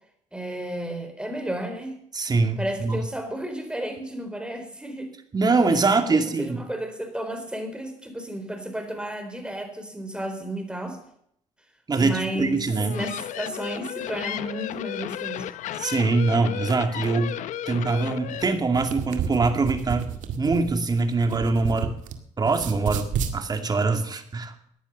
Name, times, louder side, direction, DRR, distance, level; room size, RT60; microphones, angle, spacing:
voice 1, 0.3-1.9 2.6-5.1 6.1-11.0 12.0-12.6 12.9-15.5, right 1 dB, 5° right, 5 dB, 4.1 m, -32 dB
voice 2, 2.1-3.0 5.3-6.6 11.9-13.0 15.8-17.4 17.7-21.9 22.4-24.7, right 3 dB, 30° right, 6 dB, 2.4 m, -23 dB
sound 1, 12.7-18.4, left 11 dB, 80° left, 0.8 m, -34 dB
sound 2, 18.6-22.1 22.4-23.4, right 7 dB, 80° right, 1.9 m, -31 dB
15.5 x 10.5 x 5.5 m, 0.69 s
cardioid pair, 95°, 13 cm